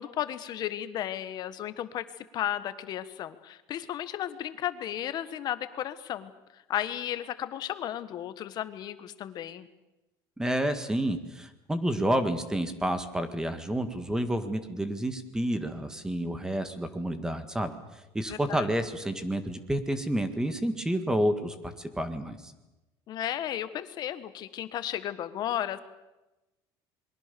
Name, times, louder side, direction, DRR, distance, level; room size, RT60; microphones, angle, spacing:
voice 1, 0.0-9.7 18.3-18.7 23.1-25.8, left 11 dB, 45° left, 12 dB, 1.5 m, -34 dB
voice 2, 10.4-17.7 18.1-22.5, right 1 dB, 5° right, 10 dB, 1.8 m, -29 dB
27.0 x 22.5 x 7.0 m, 1.0 s
cardioid pair, 160°, 10 cm